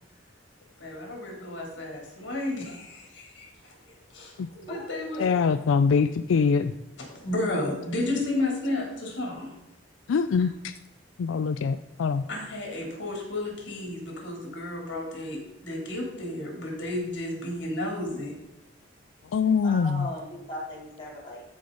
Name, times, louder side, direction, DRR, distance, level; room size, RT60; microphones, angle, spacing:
voice 1, 0.8-3.7 4.1-5.2 7.1-9.5 12.3-18.3, left 1 dB, 65° left, -1 dB, 3.2 m, -32 dB
voice 2, 5.2-6.7 10.1-10.8 11.2-12.2 19.3-20.1, left 5 dB, 85° left, 11 dB, 0.4 m, -24 dB
voice 3, 19.6-21.4, left 1 dB, 25° left, -6 dB, 3.4 m, -38 dB
14.5 x 5.1 x 3.9 m, 0.89 s
head